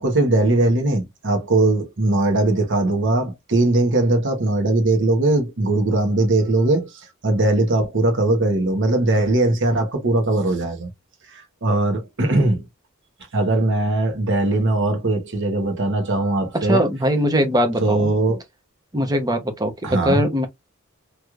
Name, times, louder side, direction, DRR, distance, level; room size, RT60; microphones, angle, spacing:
voice 1, 0.0-10.9 11.3-12.6 13.3-16.8 17.8-18.4 19.8-20.2, right 2 dB, 60° right, 1.3 m, -20 dB
voice 2, 16.6-18.1 18.9-20.5, equal, 20° right, 0.8 m, -21 dB
3.3 x 3.1 x 2.4 m
head